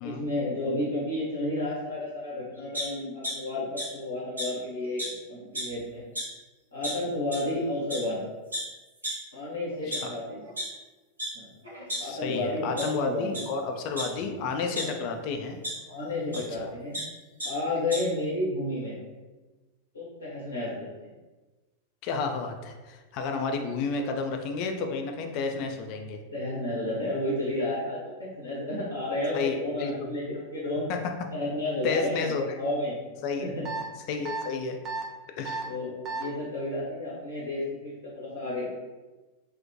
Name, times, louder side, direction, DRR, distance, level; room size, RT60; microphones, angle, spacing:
voice 1, 0.0-6.1 6.7-8.2 9.3-10.5 11.3-11.5 12.0-13.4 14.8-15.2 15.9-17.0 17.4-18.9 19.9-21.1 25.6-25.7 26.3-30.9 31.3-33.0 33.4-33.7 35.6-38.7, left 1 dB, 70° left, -7 dB, 0.6 m, -32 dB
sound 1, 2.7-3.3 3.8-3.9 4.4-4.5 5.0-5.1 5.4-5.7 6.2-6.3 6.8-6.9 7.3-7.4 7.9-8.0 8.5-8.6 9.0-9.1 9.7-10.6 11.2-11.3 11.6-12.4 12.8-12.9 13.3-13.4 14.0-14.8 15.6-15.7 16.3-16.4 16.7-17.0 17.4-17.5 17.8-18.0, equal, 80° right, 0.7 m, -33 dB
voice 2, 12.0-15.6 16.6-16.7 22.0-26.2 29.3-30.1 30.9-31.0 31.8-32.6 33.2-33.5 34.1-34.8 35.4-35.7, left 4 dB, 45° left, 4 dB, 0.3 m, -31 dB
sound 2, 33.6-33.8 34.2-34.4 34.8-35.0 35.4-35.6 36.0-36.2, right 4 dB, 30° right, 0.4 m, -32 dB
2.5 x 2.1 x 2.5 m, 1.2 s
figure-of-eight pair, 90°, 0 cm